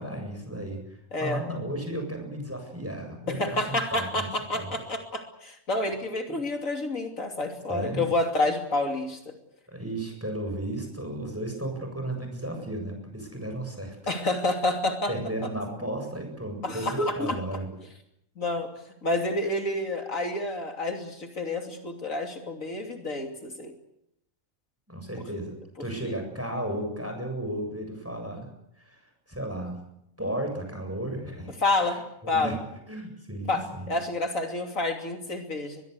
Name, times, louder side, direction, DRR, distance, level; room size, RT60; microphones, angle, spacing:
voice 1, 0.0-4.3 4.5-4.7 6.3-6.4 7.7-8.0 9.7-14.0 15.1-17.8 24.9-28.5 28.8-29.8 30.2-32.6 32.9-33.9, right 1 dB, 10° right, 4 dB, 7.7 m, -34 dB
voice 2, 1.1-1.4 3.3-9.2 14.1-15.1 16.6-17.4 18.4-18.7 19.0-23.7 26.0-26.1 31.6-32.0 32.3-32.6 33.5-35.8, left 2 dB, 75° left, 4 dB, 3.3 m, -29 dB
23.0 x 22.0 x 8.2 m, 0.79 s
omnidirectional pair, 1.4 m